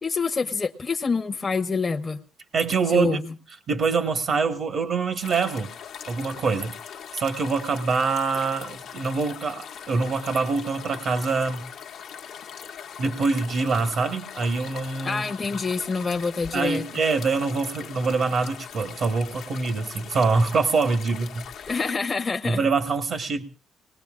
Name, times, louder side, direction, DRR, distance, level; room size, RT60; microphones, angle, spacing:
voice 1, 0.0-2.2 2.9-3.3 15.0-16.8 21.6-22.7, left 4 dB, 30° left, 5 dB, 0.7 m, -27 dB
voice 2, 2.5-3.2 3.7-5.7 6.1-6.8 7.1-11.6 13.0-15.2 16.5-21.5 22.5-23.4, right 4 dB, 65° right, 6 dB, 1.3 m, -24 dB
sound 1, 5.2-21.9, left 8 dB, 75° left, 0.9 m, -41 dB
28.0 x 19.5 x 2.4 m, 0.35 s
cardioid pair, 90°, 0 cm